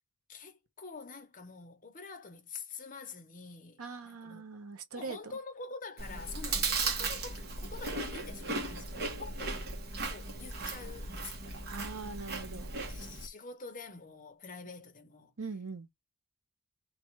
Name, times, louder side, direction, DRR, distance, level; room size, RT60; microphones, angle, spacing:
voice 1, 0.3-4.4 4.9-9.6 10.1-11.6 12.9-15.3, left 4 dB, 40° left, 0.9 m, -46 dB
voice 2, 3.8-5.3 11.7-12.7 15.4-15.9, right 4 dB, 85° right, 1.0 m, -42 dB
Chewing mastication, 6.0-13.3, right 3 dB, 45° right, 1.1 m, -36 dB
3.4 x 2.4 x 4.4 m
head